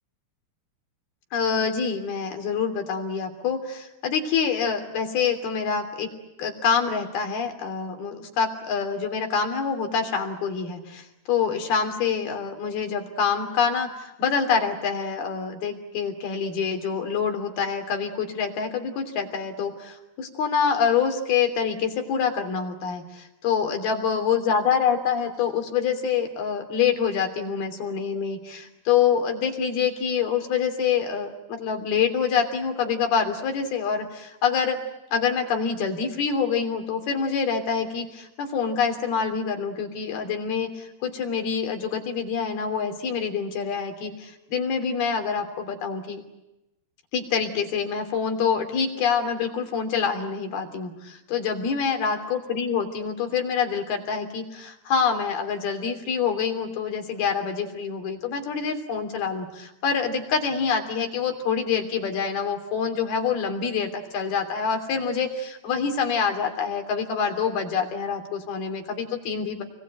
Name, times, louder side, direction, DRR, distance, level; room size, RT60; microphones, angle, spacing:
voice 1, 1.3-6.1 6.4-34.8 35.1-46.2 47.1-69.6, left 6 dB, 70° left, 5 dB, 5.0 m, -26 dB
29.0 x 22.0 x 9.0 m, 0.95 s
omnidirectional pair, 4.7 m